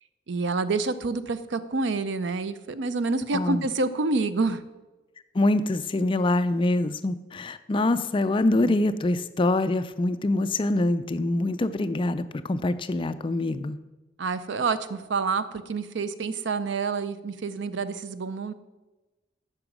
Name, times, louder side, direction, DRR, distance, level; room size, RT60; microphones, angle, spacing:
voice 1, 0.3-4.6 14.2-18.5, right 3 dB, 65° right, 13 dB, 0.5 m, -28 dB
voice 2, 3.3-3.7 5.3-13.8, left 2 dB, 25° left, 12 dB, 0.4 m, -25 dB
8.8 x 6.1 x 6.0 m, 1.2 s
head